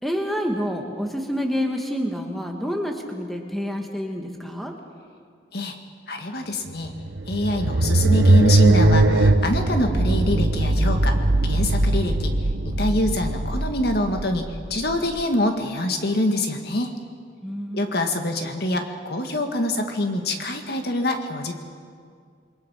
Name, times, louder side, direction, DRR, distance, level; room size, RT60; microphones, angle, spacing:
voice 1, 0.0-4.7 17.4-18.0, equal, ahead, 2 dB, 1.9 m, -28 dB
voice 2, 6.1-6.9 7.3-11.2 11.4-12.4 12.6-16.9 17.7-21.5, left 1 dB, 55° left, 4 dB, 1.9 m, -25 dB
sound 1, 6.8-15.2, right 2 dB, 75° right, 1.2 m, -20 dB
28.0 x 22.0 x 5.7 m, 2.1 s
head